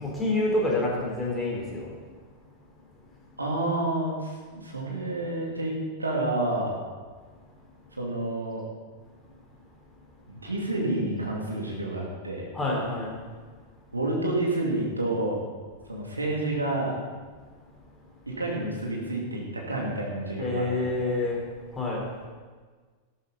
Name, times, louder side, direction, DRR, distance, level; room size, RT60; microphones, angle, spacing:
voice 1, 0.0-2.0 9.2-9.4 10.1-10.2 12.5-13.1 13.5-13.6 15.9-16.0 17.8-18.0 20.4-21.4 21.7-22.1, left 2 dB, 10° left, -4 dB, 4.1 m, -28 dB
voice 2, 3.4-6.7 8.0-8.6 10.3-12.5 13.9-15.4 15.9-16.9 18.3-20.9, right 2 dB, 80° right, -2 dB, 2.8 m, -29 dB
13.5 x 12.5 x 4.2 m, 1.5 s
figure-of-eight pair, 90°, 0 cm